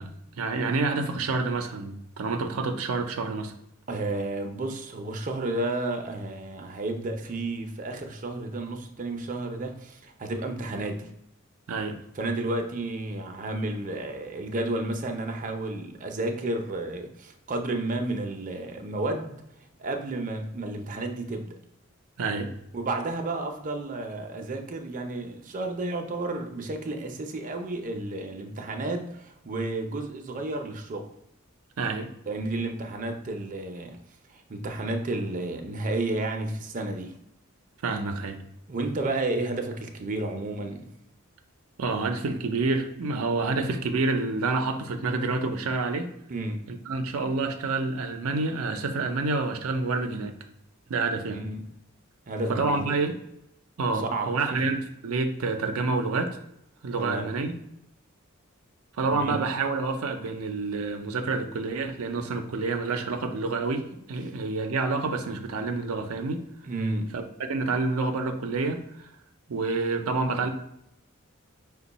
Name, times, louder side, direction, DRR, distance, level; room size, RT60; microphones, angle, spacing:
voice 1, 0.0-3.5 11.7-12.0 22.2-22.5 31.8-32.1 37.8-38.4 41.8-46.1 46.7-50.3 50.9-51.4 52.5-53.2 53.8-54.8 55.0-56.4 56.8-57.5 59.0-66.4 67.1-67.2 67.5-69.1 69.5-70.5, right 3 dB, 85° right, 6 dB, 0.5 m, -28 dB
voice 2, 3.9-11.1 12.1-19.4 19.8-21.6 22.7-31.1 32.3-34.0 34.3-37.1 38.7-40.9 46.3-46.6 51.3-51.6 52.3-53.0 53.8-54.6 57.0-57.3 59.1-59.4 66.6-67.1, right 2 dB, 40° right, 4 dB, 0.5 m, -32 dB
5.2 x 2.2 x 4.0 m, 0.80 s
head